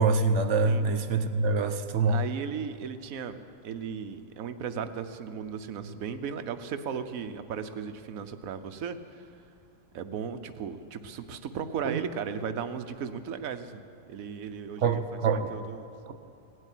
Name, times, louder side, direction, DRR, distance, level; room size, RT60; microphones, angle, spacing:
voice 1, 0.0-2.2 11.8-12.0 14.8-15.5 16.1-16.2, right 4 dB, 65° right, 9 dB, 1.1 m, -25 dB
voice 2, 2.1-9.2 9.9-14.9 15.3-15.9, right 7 dB, 80° right, 10 dB, 1.2 m, -36 dB
17.5 x 8.0 x 10.0 m, 2.5 s
omnidirectional pair, 1.4 m